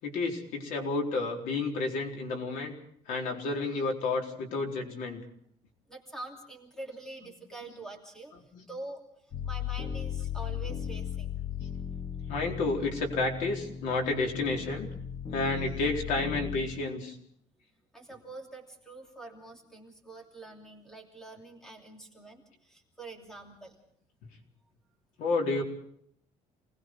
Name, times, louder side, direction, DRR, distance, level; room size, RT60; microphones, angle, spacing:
voice 1, 0.0-2.7 3.1-5.2 7.2-7.3 8.3-8.4 10.5-10.6 12.3-14.9 15.3-17.1 25.2-25.6, left 3 dB, 80° left, 2 dB, 4.3 m, -31 dB
voice 2, 5.9-8.3 8.7-9.0 9.4-11.4 17.9-23.8, right 2 dB, 5° left, 2 dB, 2.9 m, -45 dB
sound 1, 9.3-16.6, left 8 dB, 40° left, 2.6 m, -36 dB
28.0 x 20.0 x 4.7 m, 0.65 s
cardioid pair, 175°, 13 cm